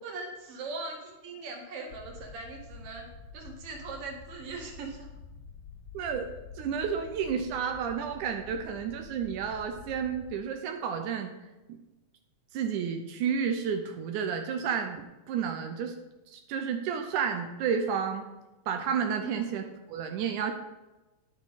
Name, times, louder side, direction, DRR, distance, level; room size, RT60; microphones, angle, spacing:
voice 1, 0.0-5.1 19.2-19.5, right 3 dB, 55° right, 1 dB, 2.5 m, -40 dB
sound 1, 1.9-10.3, left 4 dB, 50° left, 2.4 m, -48 dB
voice 2, 5.9-11.3 11.7-11.8 12.5-16.0 16.3-18.3 18.7-20.5, right 7 dB, 85° right, 5 dB, 2.2 m, -31 dB
9.5 x 8.2 x 4.1 m, 1.1 s
omnidirectional pair, 3.5 m